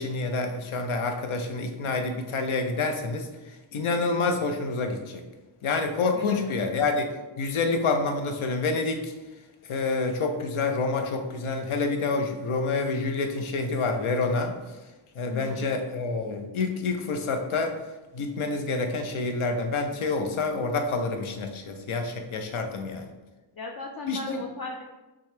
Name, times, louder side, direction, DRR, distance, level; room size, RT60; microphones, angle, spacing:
voice 1, 0.0-3.3 3.7-5.2 5.6-7.1 7.4-9.1 9.7-14.6 15.2-17.8 18.1-23.1 24.1-24.4, left 3 dB, 85° left, 5 dB, 0.7 m, -28 dB
voice 2, 6.1-6.6 15.3-15.8 23.6-24.8, left 3 dB, 50° left, 0 dB, 0.5 m, -37 dB
5.9 x 2.3 x 3.3 m, 1.1 s
cardioid pair, 75°, 48 cm